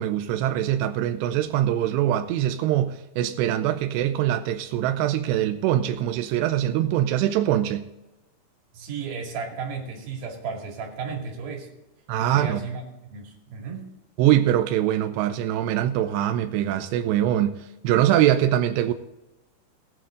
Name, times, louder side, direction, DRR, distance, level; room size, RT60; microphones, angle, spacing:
voice 1, 0.0-7.9 12.1-12.6 14.2-18.9, right 12 dB, 85° right, 8 dB, 2.5 m, -23 dB
voice 2, 8.7-11.7 12.2-12.8 13.1-13.9, right 5 dB, 55° right, 0 dB, 3.8 m, -34 dB
19.5 x 7.6 x 3.8 m, 0.98 s
omnidirectional pair, 5.4 m